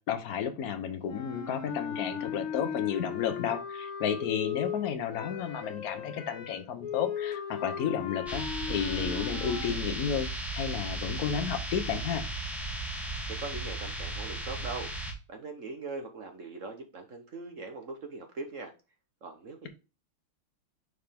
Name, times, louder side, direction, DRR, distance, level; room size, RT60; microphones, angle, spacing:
voice 1, 0.1-10.3 10.5-12.2, left 8 dB, 55° left, 8 dB, 1.1 m, -32 dB
sound 1, 1.1-9.8, left 8 dB, 85° left, 2.0 m, -37 dB
sound 2, 8.3-15.1, right 2 dB, ahead, 0.9 m, -35 dB
voice 2, 13.2-18.7 19.2-19.7, right 3 dB, 50° right, 5 dB, 1.0 m, -41 dB
6.7 x 4.6 x 3.5 m, 0.31 s
omnidirectional pair, 2.3 m